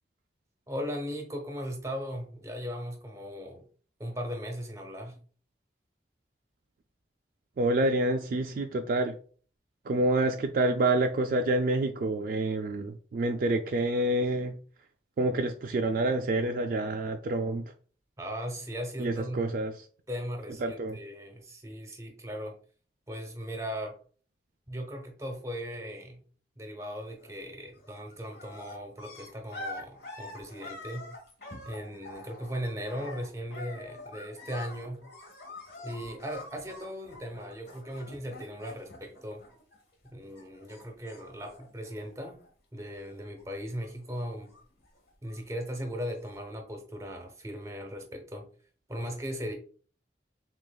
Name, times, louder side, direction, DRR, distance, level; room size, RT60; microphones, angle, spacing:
voice 1, 0.7-3.7 4.0-5.2 18.2-19.4 20.1-22.6 23.1-24.0 24.7-26.2 26.6-31.1 31.6-35.1 35.8-39.4 40.0-42.4 42.7-44.5 45.2-48.5 48.9-49.5, equal, 15° right, 0.7 m, -38 dB
voice 2, 7.6-9.2 9.9-14.6 15.2-17.7 19.0-19.7 20.6-21.0, right 2 dB, 50° right, 0.3 m, -27 dB
sound 1, 27.1-27.5 27.8-40.1 40.3-42.5 42.8-43.4 43.7-45.6 46.3-46.4, left 2 dB, 60° left, 1.3 m, -46 dB
6.2 x 2.5 x 2.2 m
head